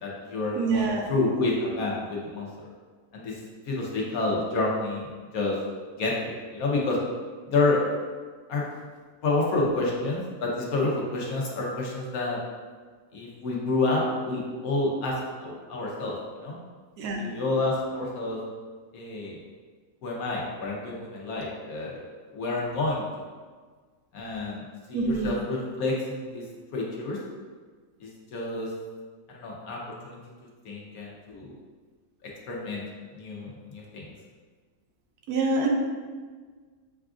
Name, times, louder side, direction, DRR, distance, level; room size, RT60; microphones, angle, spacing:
voice 1, 0.0-2.5 3.1-3.4 3.7-5.1 5.3-5.6 6.0-7.0 7.5-7.8 8.5-8.6 9.2-12.4 13.1-16.5 17.2-18.4 18.9-19.4 20.0-22.0 22.3-23.1 24.1-24.6 24.9-26.4 26.7-27.2 28.0-28.7 29.3-29.8 30.0-30.2 30.6-31.5 32.5-32.8 33.1-34.0, left 2 dB, 75° left, -3 dB, 1.3 m, -29 dB
voice 2, 0.5-1.1 17.0-17.2 24.9-25.4 35.3-35.7, right 3 dB, 90° right, 1 dB, 1.2 m, -26 dB
6.7 x 2.4 x 2.4 m, 1.5 s
omnidirectional pair, 1.6 m